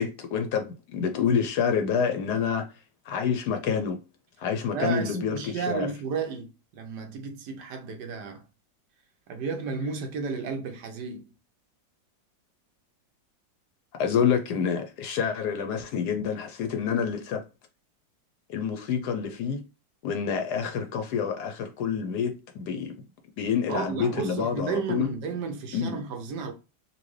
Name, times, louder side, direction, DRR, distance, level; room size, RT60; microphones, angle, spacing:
voice 1, 0.0-2.7 3.1-4.0 4.4-5.9 14.0-17.4 18.5-19.6 20.0-22.9 23.4-25.1 25.7-26.0, left 7 dB, 70° left, 1.0 m, -27 dB
voice 2, 4.7-8.4 9.3-11.3 23.7-26.5, right 5 dB, 70° right, 1.2 m, -32 dB
4.1 x 2.6 x 3.1 m
omnidirectional pair, 2.0 m